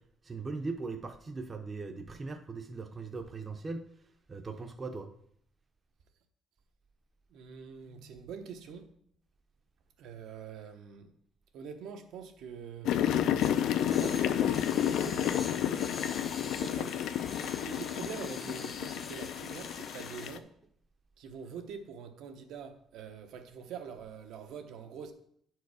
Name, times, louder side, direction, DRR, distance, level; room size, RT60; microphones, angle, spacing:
voice 1, 0.3-3.9 4.3-5.1, right 3 dB, 20° right, 0.6 m, -39 dB
voice 2, 7.3-8.9 10.0-11.1 11.5-13.0 14.0-15.4 16.6-17.0 17.4-20.5 21.2-25.1, right 6 dB, 75° right, 0.9 m, -44 dB
sound 1, 12.9-20.4, left 10 dB, 75° left, 0.5 m, -31 dB
sound 2, 13.4-20.3, left 4 dB, 25° left, 0.7 m, -45 dB
9.3 x 4.6 x 4.8 m
cardioid pair, 155°, 0 cm